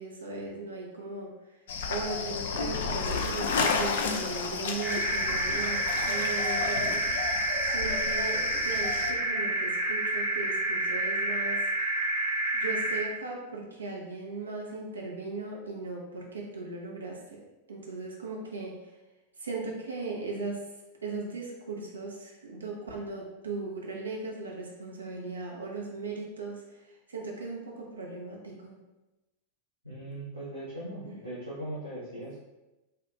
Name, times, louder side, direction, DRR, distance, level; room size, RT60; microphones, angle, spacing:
voice 1, 0.0-1.6 1.9-7.4 7.6-11.7 12.5-17.4 17.7-18.9 19.4-20.7 21.0-28.8 30.0-30.2 31.1-31.2, right 3 dB, 75° right, -1 dB, 0.5 m, -38 dB
sound 1, 1.7-9.1, left 4 dB, 60° left, 0.3 m, -32 dB
sound 2, 4.8-13.0, right 2 dB, 35° right, 0.8 m, -29 dB
voice 2, 29.8-32.4, right 1 dB, 90° left, -10 dB, 0.8 m, -39 dB
3.3 x 2.4 x 3.0 m, 1.0 s
figure-of-eight pair, 90°, 0 cm